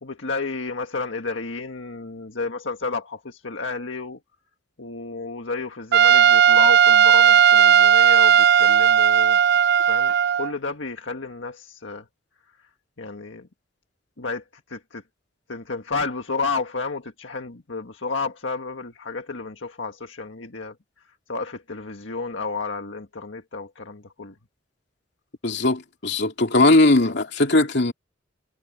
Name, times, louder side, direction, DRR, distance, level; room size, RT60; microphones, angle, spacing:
voice 1, 0.0-4.2 4.8-9.4 9.9-12.0 13.0-13.5 14.2-14.4 14.7-15.0 15.5-20.7 21.3-24.3, left 4 dB, 85° left, 1.7 m, -31 dB
Trumpet, 5.9-10.5, right 8 dB, 60° right, 0.4 m, -15 dB
voice 2, 25.4-27.9, left 2 dB, 65° left, 2.8 m, -19 dB
head